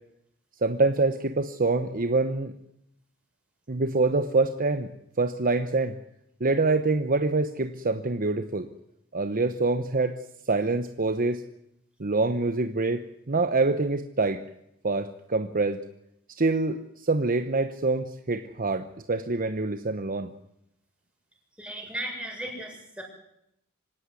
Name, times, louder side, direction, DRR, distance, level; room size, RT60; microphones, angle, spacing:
voice 1, 0.6-2.5 3.7-4.9 5.2-6.0 6.4-8.7 9.1-11.4 12.0-14.4 14.8-15.8 16.4-20.3, right 3 dB, 40° right, 9 dB, 1.0 m, -25 dB
voice 2, 21.6-23.0, right 1 dB, 5° right, 0 dB, 7.1 m, -36 dB
25.5 x 17.0 x 9.8 m, 0.79 s
head